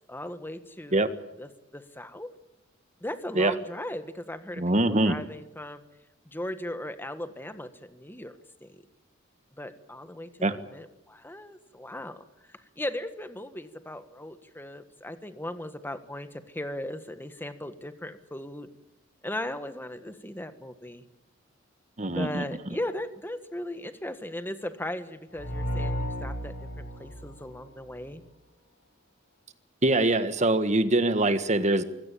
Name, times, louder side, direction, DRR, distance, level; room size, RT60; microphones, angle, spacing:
voice 1, 0.1-1.1 1.4-2.3 3.0-5.8 6.2-8.8 9.6-18.7 19.2-21.0 22.1-28.2, left 1 dB, 10° left, 10 dB, 1.5 m, -38 dB
voice 2, 4.6-5.2 10.4-10.5 22.0-22.4 29.8-31.8, right 2 dB, 35° right, 11 dB, 1.6 m, -23 dB
sound 1, 25.3-28.2, equal, 80° left, 6.9 m, -34 dB
24.0 x 17.0 x 8.5 m, 0.91 s
head